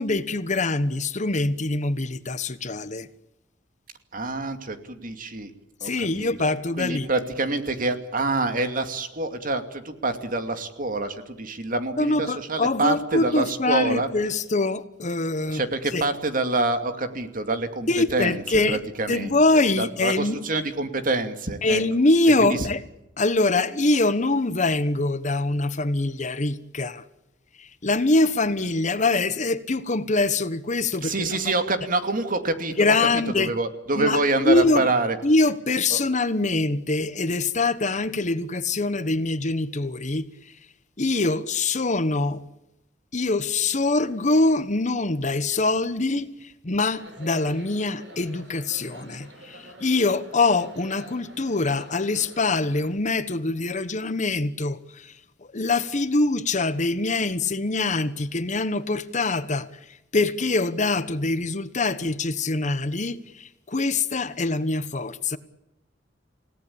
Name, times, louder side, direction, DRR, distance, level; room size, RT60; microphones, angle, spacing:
voice 1, 0.0-3.1 5.8-7.1 12.0-15.6 15.9-16.0 17.9-18.8 19.1-20.4 21.6-22.8 23.2-27.0 27.6-31.4 32.7-33.5 34.0-34.9 35.2-40.5 41.0-42.4 43.1-55.2 55.5-65.4, left 2 dB, 40° left, 1.2 m, -24 dB
voice 2, 4.1-5.5 5.8-5.9 6.2-14.1 15.5-18.4 18.7-21.8 22.4-22.6 31.0-32.7 33.4-35.2 35.9-36.0, right 2 dB, 50° right, 2.5 m, -26 dB
sound 1, 46.9-52.9, right 1 dB, 80° right, 7.5 m, -46 dB
29.0 x 17.5 x 8.7 m
head